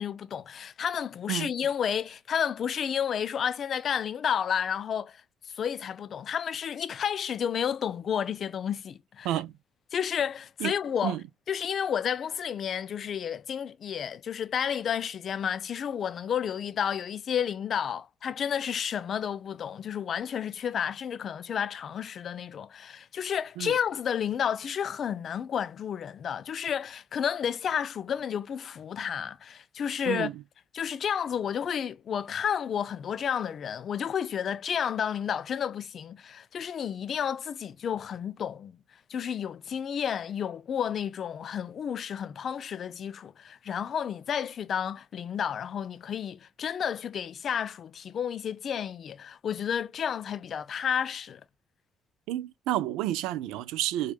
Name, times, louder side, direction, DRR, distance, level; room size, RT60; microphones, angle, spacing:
voice 1, 0.0-5.2 5.5-9.4 9.9-11.2 11.5-30.3 30.7-38.8 39.1-51.4, left 8 dB, 55° left, 0.4 m, -31 dB
voice 2, 52.3-54.1, right 13 dB, 90° right, 0.3 m, -30 dB
4.4 x 2.2 x 2.3 m
cardioid pair, 80°, 0 cm